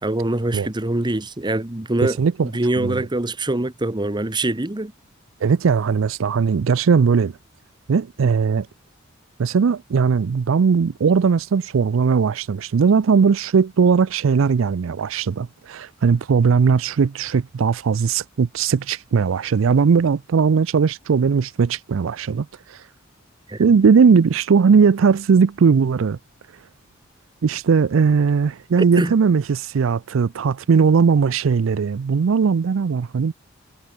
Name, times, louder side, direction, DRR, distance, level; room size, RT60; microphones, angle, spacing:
voice 1, 0.0-2.2 2.4-4.9 23.5-23.7 29.0-29.1, right 1 dB, 20° right, 1.1 m, -24 dB
voice 2, 2.0-2.5 2.8-3.1 5.4-7.3 7.9-8.7 9.4-22.8 23.6-26.2 27.4-33.3, right 5 dB, 75° right, 0.4 m, -18 dB
head